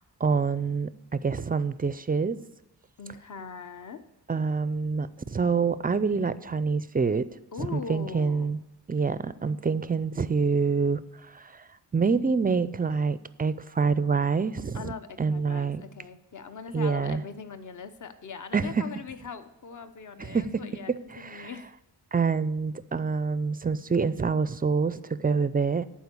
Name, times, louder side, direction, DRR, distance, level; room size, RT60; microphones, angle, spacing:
voice 1, 0.0-2.4 4.3-7.3 7.6-8.6 8.9-11.0 11.3-11.6 11.9-14.9 15.2-15.8 16.7-17.2 18.5-18.9 20.2-21.5 22.1-25.9, right 5 dB, 25° right, 15 dB, 0.4 m, -26 dB
voice 2, 3.0-4.0 7.5-8.5 14.7-21.7, left 6 dB, 50° left, 10 dB, 0.8 m, -41 dB
11.5 x 4.5 x 8.2 m, 0.92 s
wide cardioid pair, 90°, 40 cm